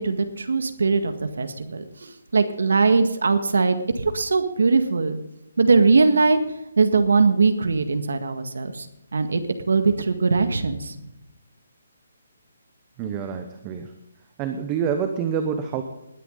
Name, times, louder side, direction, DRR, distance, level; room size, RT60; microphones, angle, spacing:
voice 1, 0.0-5.2 5.6-6.4 6.8-8.9 9.1-10.9, right 4 dB, 85° right, 8 dB, 1.7 m, -21 dB
voice 2, 13.0-13.9 14.4-15.8, right 7 dB, 15° right, 7 dB, 0.8 m, -27 dB
20.0 x 9.9 x 3.9 m, 0.87 s
hypercardioid pair, 175°, 0 cm